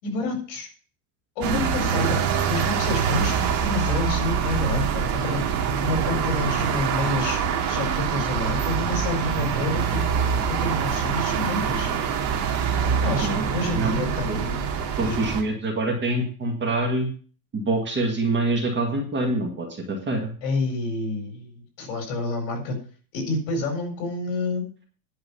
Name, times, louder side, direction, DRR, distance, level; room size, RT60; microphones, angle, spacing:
voice 1, 0.0-0.7 1.4-5.4 5.8-10.1 10.5-11.9 13.0-14.7 15.0-15.2 20.4-22.8 23.1-24.7, left 2 dB, 55° left, 4 dB, 4.6 m, -29 dB
sound 1, 1.4-15.4, right 7 dB, 50° right, 2.5 m, -25 dB
voice 2, 15.0-17.1 17.5-20.3, right 2 dB, 20° right, 2 dB, 1.9 m, -25 dB
10.5 x 5.7 x 7.0 m, 0.42 s
supercardioid pair, 160°, 50 cm